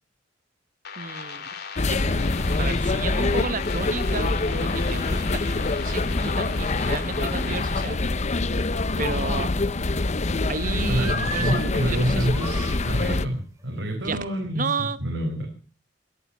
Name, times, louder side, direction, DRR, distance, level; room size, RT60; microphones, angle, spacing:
sound 1, 0.8-7.8, left 6 dB, 60° left, 2.5 m, -38 dB
voice 1, 1.0-1.4 1.9-2.2 2.6-8.0 9.0-9.5 10.5-12.3 14.0-14.2 14.5-15.0, right 4 dB, 45° right, 15 dB, 0.9 m, -32 dB
sound 2, 1.1-1.6 2.1-2.2 2.6-6.0 8.4-9.2 9.6-10.5 10.9-11.6 12.1-12.8 13.6-13.8, right 2 dB, 20° right, 2.3 m, -40 dB
sound 3, 1.8-13.2, left 2 dB, 40° left, 0.7 m, -25 dB
voice 2, 10.9-15.5, right 1 dB, 85° right, 0 dB, 4.6 m, -27 dB
22.0 x 8.8 x 7.0 m, 0.38 s
head